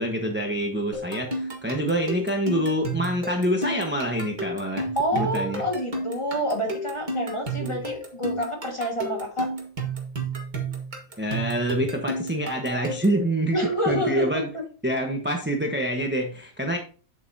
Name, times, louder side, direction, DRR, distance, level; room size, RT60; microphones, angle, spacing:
voice 1, 0.0-5.6 7.6-7.8 11.2-13.6 13.8-14.5 14.8-16.8, right 1 dB, 10° right, 2 dB, 1.0 m, -26 dB
sound 1, 0.9-13.2, right 2 dB, 30° right, 1.8 m, -32 dB
voice 2, 5.0-9.5 13.5-14.6, equal, 20° left, 1 dB, 1.7 m, -28 dB
8.8 x 8.0 x 2.8 m, 0.38 s
omnidirectional pair, 1.8 m